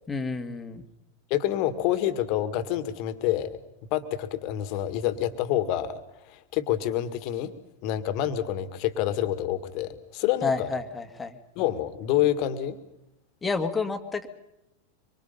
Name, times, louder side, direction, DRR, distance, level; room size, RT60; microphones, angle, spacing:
voice 1, 0.1-0.8 10.4-11.4 13.4-14.3, left 4 dB, 15° left, 7 dB, 2.1 m, -29 dB
voice 2, 1.3-3.6 3.9-6.0 6.3-7.5 7.8-10.7 11.6-12.8, left 12 dB, 45° left, 11 dB, 2.1 m, -27 dB
25.5 x 25.0 x 5.7 m, 0.88 s
figure-of-eight pair, 90°, 0 cm